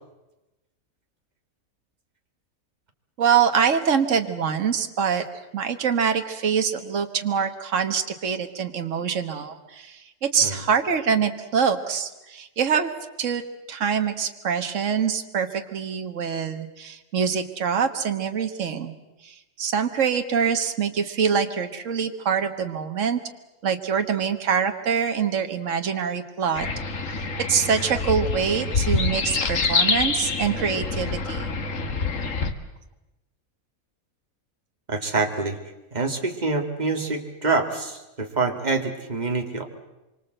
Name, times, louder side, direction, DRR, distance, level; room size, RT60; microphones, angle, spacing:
voice 1, 3.2-5.2 5.5-12.9 13.2-18.9 19.2-23.2 23.6-26.7 27.1-31.5, right 7 dB, 60° right, 6 dB, 1.8 m, -25 dB
sound 1, 26.6-32.5, left 4 dB, 60° left, 1.9 m, -26 dB
voice 2, 34.9-35.6 35.9-39.6, right 3 dB, 30° right, 3 dB, 2.4 m, -26 dB
26.0 x 24.5 x 7.9 m, 1.0 s
omnidirectional pair, 1.5 m